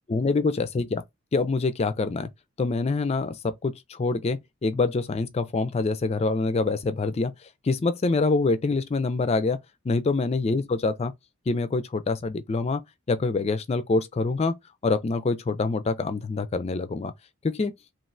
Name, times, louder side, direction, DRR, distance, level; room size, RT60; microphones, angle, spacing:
voice 1, 0.1-1.0 1.3-2.3 2.6-7.3 7.6-9.6 9.8-11.1 11.5-12.8 13.1-14.6 14.8-17.1 17.4-17.7, left 3 dB, 30° left, 0.3 m, -25 dB
3.1 x 2.4 x 2.5 m
head